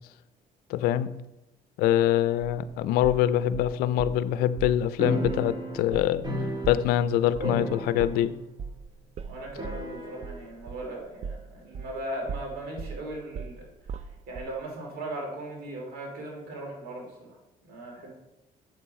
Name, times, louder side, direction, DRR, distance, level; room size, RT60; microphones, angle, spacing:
voice 1, 0.7-1.1 1.8-6.3 6.7-8.3, left 11 dB, 85° left, 14 dB, 0.5 m, -24 dB
sound 1, 2.4-4.2 4.6-4.9 5.2-5.4 5.7-12.0 12.3-14.6, right 5 dB, 45° right, 0.5 m, -39 dB
sound 2, 5.0-7.1 7.4-8.4 8.7-8.8 9.6-10.4, equal, 30° right, 1.9 m, -33 dB
voice 2, 9.2-13.7 14.3-17.4 17.6-18.1, right 1 dB, 80° right, 0 dB, 2.8 m, -38 dB
7.9 x 6.7 x 4.2 m, 0.96 s
cardioid pair, 95°, 15 cm